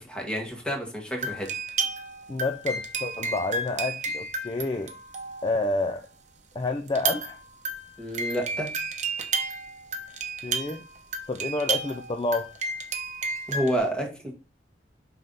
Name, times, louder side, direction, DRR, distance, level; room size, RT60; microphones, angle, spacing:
voice 1, 0.1-1.5 8.0-8.7 13.5-14.3, equal, 5° left, 0 dB, 1.5 m, -29 dB
sound 1, 1.2-5.8 6.9-13.8, right 4 dB, 40° right, 0.8 m, -32 dB
voice 2, 2.3-4.9 5.4-6.1 6.5-7.4 10.4-10.9 11.3-12.5, left 2 dB, 25° left, 5 dB, 0.4 m, -29 dB
5.5 x 3.8 x 5.4 m, 0.32 s
head